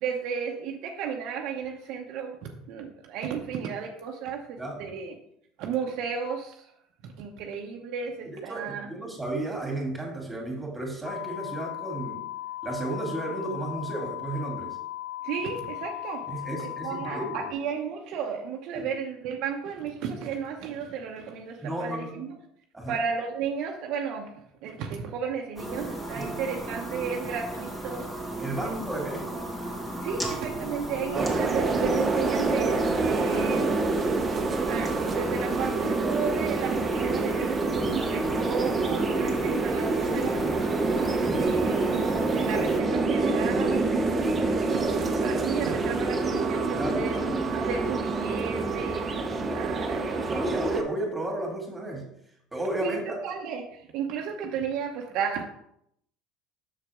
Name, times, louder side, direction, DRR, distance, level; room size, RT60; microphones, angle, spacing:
voice 1, 0.0-5.1 5.6-6.7 7.0-8.9 15.2-16.2 16.6-22.4 22.9-28.3 28.6-28.7 30.0-33.8 34.3-40.4 41.3-41.8 42.3-44.0 44.3-50.4 52.8-55.5, right 6 dB, 65° right, 1 dB, 1.0 m, -34 dB
voice 2, 4.6-4.9 8.2-12.2 12.6-14.8 16.3-17.5 18.7-18.9 21.6-22.2 22.7-23.0 26.1-26.3 28.4-29.4 31.1-31.3 41.1-41.8 46.7-47.1 49.7-52.1 52.5-53.2, right 1 dB, 10° right, -1 dB, 2.9 m, -33 dB
sound 1, 11.0-17.5, left 15 dB, 70° left, 0.4 m, -37 dB
sound 2, 25.6-42.8, right 1 dB, 10° left, 2.3 m, -35 dB
sound 3, 31.1-50.8, right 3 dB, 25° right, 1.0 m, -27 dB
6.7 x 6.6 x 3.7 m, 0.74 s
supercardioid pair, 85°, 0 cm